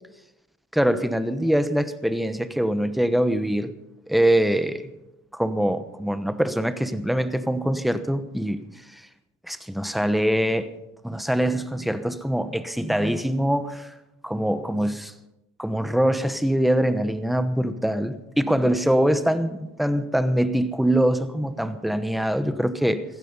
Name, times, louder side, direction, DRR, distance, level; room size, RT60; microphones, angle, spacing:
voice 1, 0.7-3.7 4.1-4.9 5.3-8.6 8.9-9.0 9.5-10.7 11.0-13.9 14.2-15.1 15.6-23.0, right 1 dB, ahead, 1.1 m, -23 dB
16.0 x 15.0 x 5.4 m
cardioid pair, 90°, 30 cm